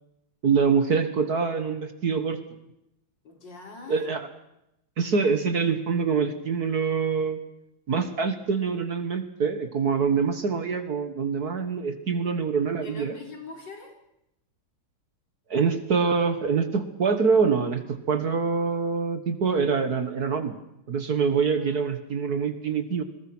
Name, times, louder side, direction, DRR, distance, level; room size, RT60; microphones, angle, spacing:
voice 1, 0.4-2.4 3.9-4.3 5.0-7.4 7.9-13.1 15.5-20.6 20.9-23.0, right 5 dB, 50° right, 9 dB, 1.8 m, -25 dB
voice 2, 3.2-4.1 12.8-14.0 21.6-21.9, left 3 dB, 60° left, 3 dB, 4.3 m, -42 dB
27.5 x 21.5 x 6.1 m, 0.84 s
omnidirectional pair, 2.3 m